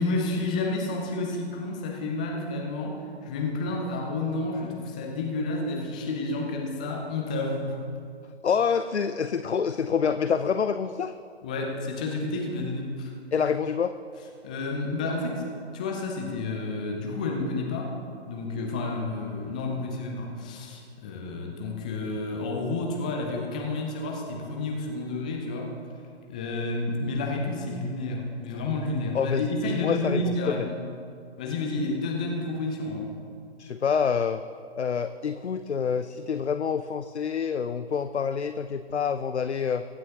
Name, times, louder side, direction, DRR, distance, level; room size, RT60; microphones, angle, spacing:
voice 1, 0.0-7.8 11.4-13.1 14.4-18.0 18.3-25.8 26.3-30.8 31.4-33.1, left 2 dB, 5° left, 0 dB, 0.4 m, -30 dB
voice 2, 8.4-11.1 13.3-13.9 29.1-29.4 29.7-30.7 33.6-34.4 34.8-39.8, left 6 dB, 80° left, 11 dB, 0.6 m, -27 dB
23.0 x 9.1 x 2.9 m, 2.4 s
figure-of-eight pair, 135°, 33 cm